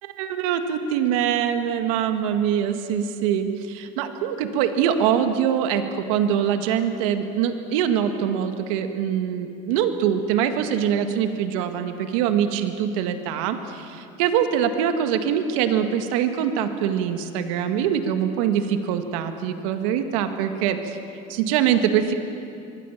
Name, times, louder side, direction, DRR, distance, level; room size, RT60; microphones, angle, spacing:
voice 1, 0.0-21.0 21.3-22.1, right 9 dB, 80° right, 7 dB, 1.8 m, -23 dB
25.0 x 21.5 x 7.4 m, 2.5 s
supercardioid pair, 125°, 17 cm